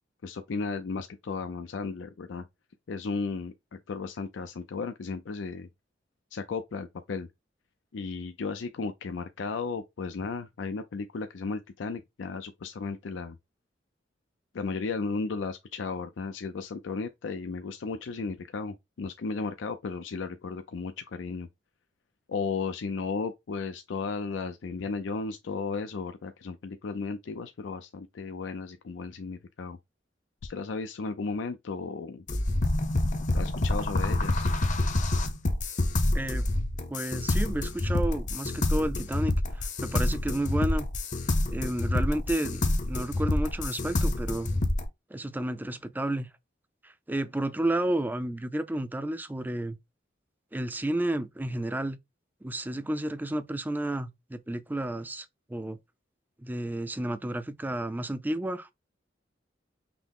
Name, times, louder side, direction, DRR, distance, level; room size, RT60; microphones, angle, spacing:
voice 1, 0.2-2.4 2.9-5.7 6.3-7.3 7.9-13.4 14.5-21.5 22.3-29.8 30.4-32.2 33.3-34.5, left 4 dB, 85° left, 0.4 m, -34 dB
sound 1, 32.3-44.8, left 2 dB, 40° left, 0.7 m, -27 dB
voice 2, 36.1-36.5 36.9-40.9 41.5-44.5 45.1-46.3 46.8-49.8 50.5-52.0 52.4-55.8 56.4-58.7, right 1 dB, 10° right, 0.4 m, -31 dB
5.9 x 2.0 x 3.5 m
head